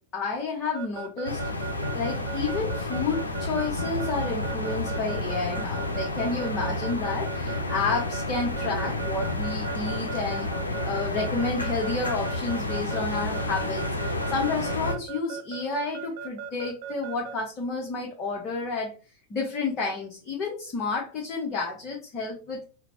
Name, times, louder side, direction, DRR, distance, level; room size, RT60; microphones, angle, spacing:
voice 1, 0.1-1.4 1.9-10.5 10.8-18.9 19.3-22.6, left 4 dB, 30° left, -1 dB, 0.9 m, -30 dB
Keyboard (musical) / Alarm, 0.7-17.4, right 9 dB, 50° right, 0.6 m, -37 dB
sound 1, 1.2-14.9, left 2 dB, 80° left, 0.6 m, -30 dB
5.6 x 2.2 x 2.6 m, 0.34 s
figure-of-eight pair, 90°, 0 cm